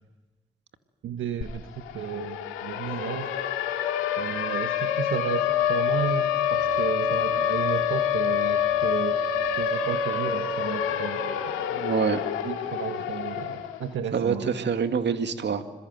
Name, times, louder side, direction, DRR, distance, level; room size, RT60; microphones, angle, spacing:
voice 1, 1.0-1.5 1.9-2.4 2.6-3.3 4.2-6.2 6.5-9.1 9.6-11.3 12.4-14.5, right 8 dB, 75° right, 7 dB, 1.4 m, -33 dB
Siren, 1.4-1.5 1.8-13.8, left 8 dB, 90° left, 2.1 m, -27 dB
voice 2, 11.7-12.2 14.1-15.6, right 6 dB, 60° right, 8 dB, 2.2 m, -26 dB
26.5 x 22.0 x 7.9 m, 1.2 s
supercardioid pair, 45°, 20 cm